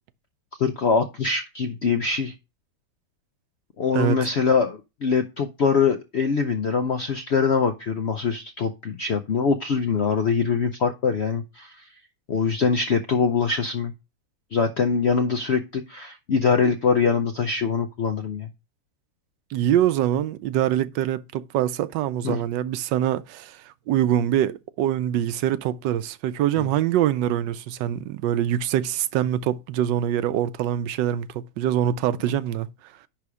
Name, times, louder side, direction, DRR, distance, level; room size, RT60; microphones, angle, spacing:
voice 1, 0.6-2.3 3.8-11.8 12.3-13.9 14.5-18.5 22.2-22.4 26.6-26.7, left 5 dB, 70° left, 0.6 m, -23 dB
voice 2, 19.5-32.7, right 11 dB, 80° right, 1.2 m, -24 dB
10.5 x 3.5 x 4.8 m
omnidirectional pair, 1.9 m